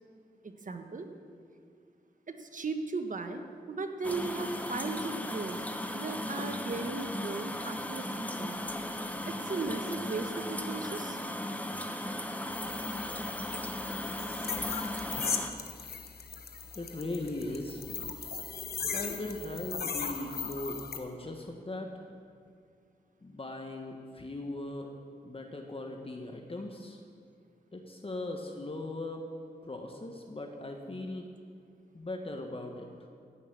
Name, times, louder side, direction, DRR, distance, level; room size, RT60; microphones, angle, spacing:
voice 1, 0.4-1.1 2.3-3.4 3.7-5.6 5.9-8.6 9.3-11.2 12.6-12.7, right 3 dB, 50° right, 6 dB, 1.4 m, -37 dB
sound 1, 4.0-15.5, left 1 dB, 10° left, 1.2 m, -37 dB
sound 2, 12.5-21.0, left 6 dB, 70° left, 1.1 m, -38 dB
voice 2, 16.7-17.8 18.9-21.9 23.2-24.9 25.2-27.0 27.7-29.3 29.6-31.3 31.9-32.9, left 2 dB, 35° left, 2 dB, 1.5 m, -39 dB
15.5 x 6.1 x 8.8 m, 2.3 s
cardioid pair, 45°, 16 cm